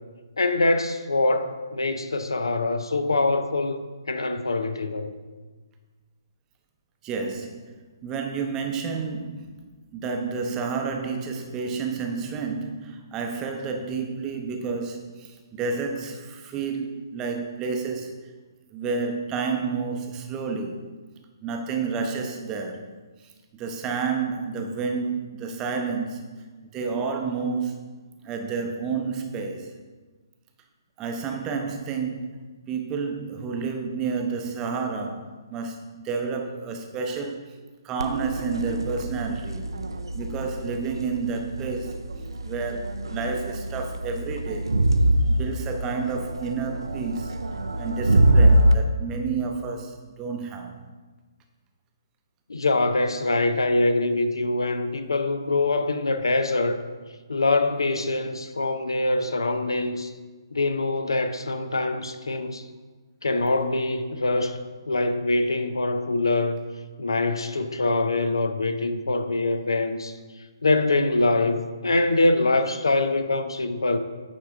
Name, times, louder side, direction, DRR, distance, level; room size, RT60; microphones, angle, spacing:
voice 1, 0.4-5.2 52.5-56.8 57.3-60.1 60.5-62.6 63.2-64.6 64.9-66.6 67.0-70.2 70.6-74.0, left 2 dB, 75° left, 0.5 m, -24 dB
voice 2, 7.0-18.3 18.7-20.9 21.4-22.9 23.2-26.5 26.7-27.8 28.2-29.7 31.0-37.6 37.8-39.8 40.1-42.0 42.4-44.8 45.2-47.4 47.8-50.8, right 5 dB, 20° right, 0.6 m, -30 dB
Crowd, 38.0-48.7, right 1 dB, 75° right, 0.5 m, -24 dB
9.0 x 3.6 x 3.5 m
figure-of-eight pair, 135°, 2 cm